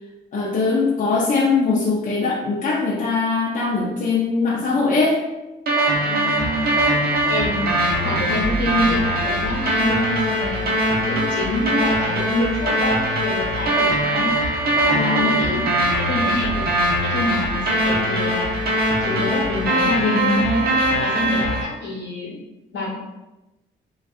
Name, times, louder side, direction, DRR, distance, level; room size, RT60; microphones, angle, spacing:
voice 1, 0.3-5.2 14.9-15.3, left 4 dB, 40° left, -5 dB, 0.5 m, -21 dB
sound 1, 5.7-21.6, right 1 dB, 50° right, 0.8 m, -21 dB
voice 2, 6.1-6.9 7.3-10.7 11.0-14.4 14.8-15.7 16.0-16.6 17.0-18.5 19.0-20.6 21.0-22.4 22.7-23.0, left 1 dB, 65° left, -4 dB, 0.9 m, -26 dB
2.5 x 2.3 x 2.3 m, 1.0 s
cardioid pair, 90°, 20 cm